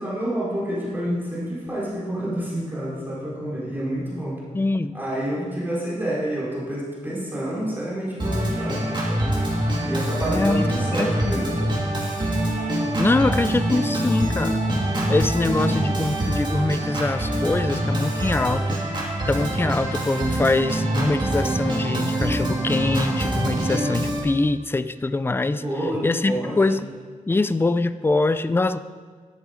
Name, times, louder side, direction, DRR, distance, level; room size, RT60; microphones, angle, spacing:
voice 1, 0.0-4.4 4.9-9.4 9.8-11.7 25.6-26.8, right 1 dB, 15° right, -7 dB, 4.1 m, -28 dB
voice 2, 4.5-4.9 10.3-11.5 13.0-14.5 15.1-18.8 19.3-25.6 26.0-26.9 27.3-28.8, left 2 dB, 15° left, 12 dB, 0.4 m, -23 dB
Organ, 8.2-24.2, right 1 dB, 35° right, 2.8 m, -24 dB
13.0 x 11.5 x 5.1 m, 1.6 s
wide cardioid pair, 155°, 14 cm